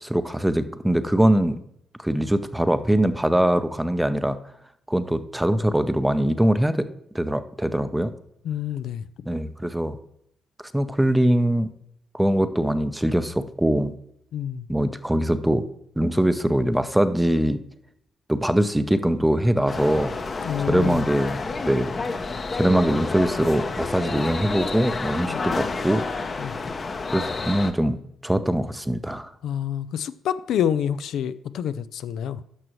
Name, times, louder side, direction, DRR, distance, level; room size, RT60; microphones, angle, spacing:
voice 1, 0.0-1.6 2.0-4.4 4.9-6.9 7.1-8.1 9.3-10.0 10.7-11.7 12.1-14.0 14.7-15.6 16.0-17.6 18.3-20.2 20.6-21.4 21.6-21.9 22.5-26.0 27.1-28.0 28.2-29.3, right 1 dB, 5° right, 0.6 m, -22 dB
voice 2, 8.4-9.1 14.3-14.7 20.4-21.1 25.3-25.4 26.4-26.5 29.4-32.4, left 9 dB, 75° left, 0.3 m, -27 dB
sound 1, 19.7-27.7, left 4 dB, 35° left, 0.7 m, -29 dB
11.0 x 6.2 x 3.1 m
cardioid pair, 90°, 0 cm